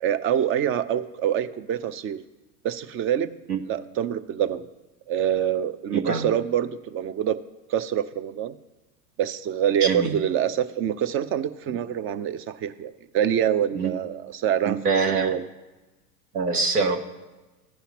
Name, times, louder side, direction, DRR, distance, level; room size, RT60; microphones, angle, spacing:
voice 1, 0.0-2.2 2.6-3.4 3.6-4.7 5.1-7.4 7.7-8.5 9.2-15.5, right 10 dB, 30° right, 13 dB, 0.5 m, -26 dB
voice 2, 5.9-6.2 9.8-10.1 13.7-13.9 14.6-15.3 16.3-17.0, right 4 dB, 85° right, 3 dB, 1.4 m, -24 dB
15.0 x 5.7 x 2.9 m, 1.1 s
hypercardioid pair, 90°, 44 cm